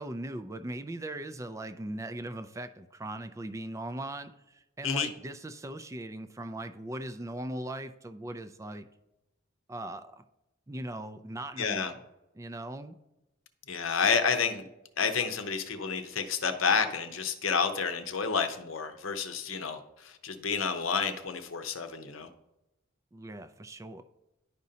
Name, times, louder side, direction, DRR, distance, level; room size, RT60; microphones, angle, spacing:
voice 1, 0.0-8.9 9.7-10.2 10.7-12.0 12.3-13.0 23.1-24.0, right 1 dB, 15° right, 10 dB, 0.4 m, -39 dB
voice 2, 11.6-11.9 13.7-14.6 15.0-22.3, left 5 dB, 75° left, 8 dB, 0.8 m, -30 dB
10.5 x 5.2 x 2.8 m, 0.91 s
head